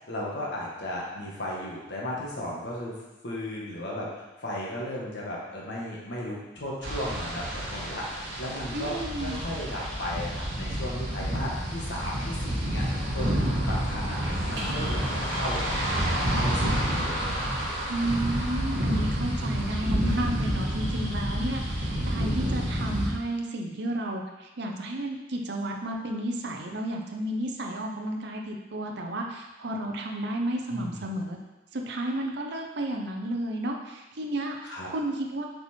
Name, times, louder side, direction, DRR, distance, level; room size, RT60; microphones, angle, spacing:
voice 1, 0.0-2.9 3.2-17.4 30.7-31.0 34.6-34.9, left 1 dB, 60° left, -5 dB, 1.6 m, -35 dB
sound 1, 6.8-23.1, equal, 80° right, 1.8 m, -29 dB
voice 2, 8.7-9.4 17.9-31.4 31.7-35.4, right 1 dB, 60° right, 1 dB, 0.8 m, -32 dB
7.9 x 4.4 x 4.4 m, 1.1 s
head